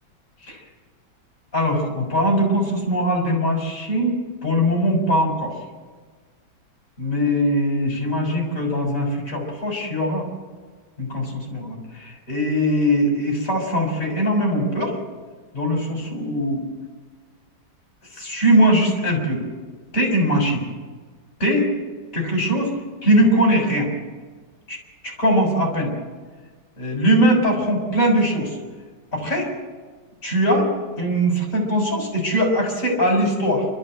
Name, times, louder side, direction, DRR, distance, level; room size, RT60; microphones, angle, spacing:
voice 1, 1.5-5.5 7.0-10.3 11.0-14.9 15.5-16.7 18.1-19.4 19.9-20.6 21.4-21.7 22.1-22.7 23.0-23.9 24.7-24.8 25.0-25.9 26.8-28.6 29.1-29.5 30.2-30.7 31.0-33.7, equal, 40° left, 0 dB, 6.9 m, -21 dB
29.0 x 13.5 x 7.9 m, 1.4 s
omnidirectional pair, 2.2 m